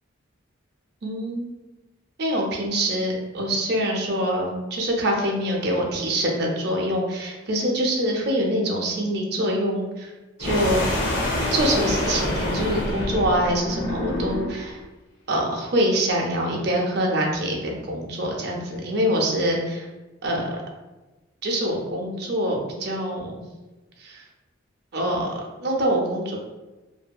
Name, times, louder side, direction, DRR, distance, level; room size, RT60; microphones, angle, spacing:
voice 1, 1.0-1.5 2.2-10.1 10.4-10.9 11.5-14.8 15.3-19.9 20.2-20.6 21.4-23.4 24.0-24.2 24.9-25.3 25.6-26.4, equal, 55° right, -1 dB, 0.5 m, -25 dB
sound 1, 10.4-14.7, left 1 dB, 70° left, 0.7 m, -26 dB
2.6 x 2.6 x 2.2 m, 1.1 s
head